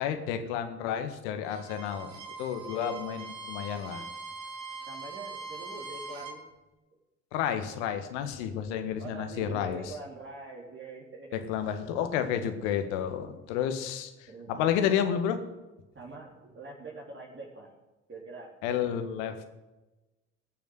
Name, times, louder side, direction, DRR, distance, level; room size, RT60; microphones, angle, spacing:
voice 1, 0.0-4.0 7.3-9.9 11.3-15.4 18.6-19.3, left 9 dB, 80° left, 8 dB, 1.7 m, -31 dB
Bowed string instrument, 1.4-6.4, right 4 dB, 55° right, 4.5 m, -42 dB
voice 2, 4.9-6.5 9.0-11.4 14.3-14.8 15.9-17.8 18.1-18.9 19.2-19.5, right 3 dB, 35° right, -3 dB, 3.7 m, -44 dB
19.5 x 7.1 x 8.1 m, 1.1 s
hypercardioid pair, 55°, 34 cm